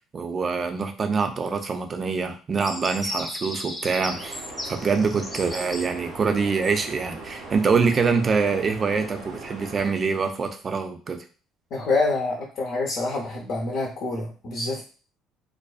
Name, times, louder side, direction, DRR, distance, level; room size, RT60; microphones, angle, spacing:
voice 1, 0.1-11.2, right 5 dB, 40° right, 6 dB, 0.5 m, -25 dB
sound 1, 2.6-9.4 9.7-10.5, left 1 dB, 15° left, 0.6 m, -36 dB
sound 2, 3.9-9.9, right 2 dB, 90° right, 1.1 m, -40 dB
voice 2, 11.7-14.8, left 3 dB, 60° left, -4 dB, 0.7 m, -26 dB
2.5 x 2.2 x 2.3 m, 0.37 s
hypercardioid pair, 60°, 0 cm